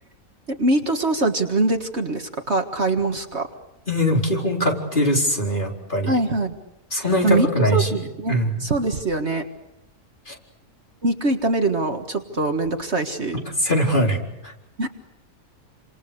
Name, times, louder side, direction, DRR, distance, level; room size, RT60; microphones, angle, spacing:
voice 1, 0.5-3.5 6.1-6.6 7.2-9.4 11.0-13.4 14.8-14.9, right 2 dB, 50° right, 5 dB, 1.9 m, -23 dB
voice 2, 3.9-6.2 6.9-8.0 8.3-8.6 10.3-10.4 13.6-14.2, equal, 35° left, 1 dB, 4.6 m, -21 dB
29.5 x 26.5 x 6.7 m, 0.88 s
omnidirectional pair, 1.6 m